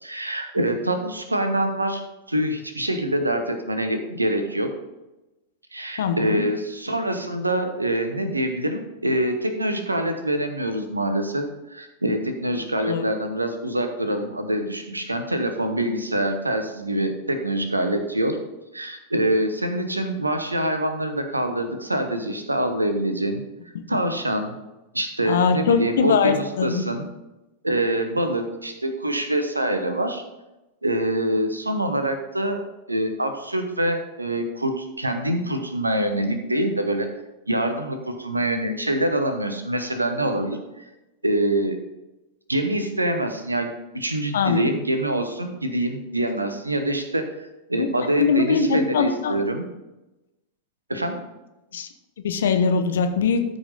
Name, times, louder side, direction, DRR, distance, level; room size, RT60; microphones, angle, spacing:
voice 1, 0.0-4.7 5.7-18.4 18.7-23.4 23.9-24.6 24.9-27.0 27.6-30.2 30.8-32.6 32.9-37.1 37.5-40.8 41.2-41.8 42.5-47.3 47.7-49.7 50.9-51.2, right 1 dB, 85° right, 7 dB, 1.0 m, -25 dB
voice 2, 6.0-6.4 12.8-13.0 23.7-23.8 25.2-26.8 44.3-44.6 47.8-47.9 48.2-49.5 51.7-51.9 52.2-53.4, left 6 dB, 60° left, 8 dB, 0.9 m, -22 dB
13.5 x 5.1 x 3.9 m, 1.0 s
figure-of-eight pair, 90°, 0 cm